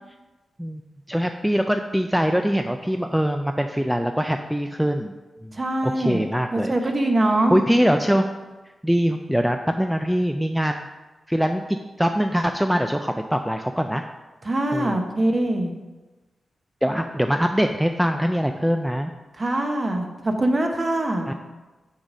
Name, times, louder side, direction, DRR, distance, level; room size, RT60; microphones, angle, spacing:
voice 1, 1.1-5.1 5.4-5.5 5.8-6.9 7.5-8.3 8.8-10.9 11.3-14.0 14.7-15.0 16.8-19.1 21.3-21.4, equal, 5° right, 5 dB, 0.3 m, -23 dB
voice 2, 5.6-7.6 14.4-15.7 19.4-21.3, right 1 dB, 30° right, 4 dB, 0.9 m, -23 dB
6.3 x 4.1 x 6.1 m, 1.2 s
wide cardioid pair, 125°, 0 cm